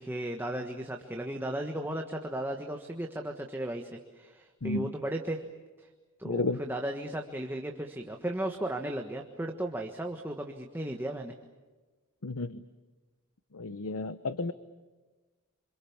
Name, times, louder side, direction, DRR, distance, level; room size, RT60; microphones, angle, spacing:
voice 1, 0.0-5.4 5.8-5.9 6.2-11.3, right 1 dB, 10° right, 3 dB, 1.4 m, -35 dB
voice 2, 6.2-6.6 12.2-12.6 13.5-14.5, left 3 dB, 75° left, 13 dB, 0.9 m, -32 dB
28.0 x 26.5 x 7.3 m, 1.2 s
head